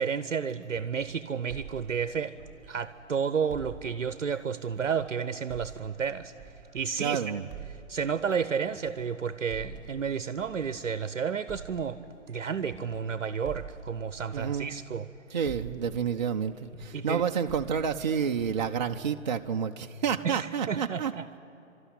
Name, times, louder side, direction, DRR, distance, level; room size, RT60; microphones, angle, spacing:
voice 1, 0.0-2.4 2.7-6.3 6.7-7.2 7.9-12.0 12.3-15.1 16.9-17.2 20.2-21.2, right 6 dB, 65° right, 13 dB, 0.8 m, -31 dB
sound 1, 0.6-3.1 3.5-7.0 7.5-11.0 11.5-15.2 15.5-19.5, right 6 dB, 10° right, 2.2 m, -47 dB
voice 2, 7.0-7.5 14.3-14.8 15.3-21.1, right 7 dB, 35° right, 4 dB, 0.6 m, -29 dB
30.0 x 13.0 x 9.9 m, 2.8 s
figure-of-eight pair, 135°, 40 cm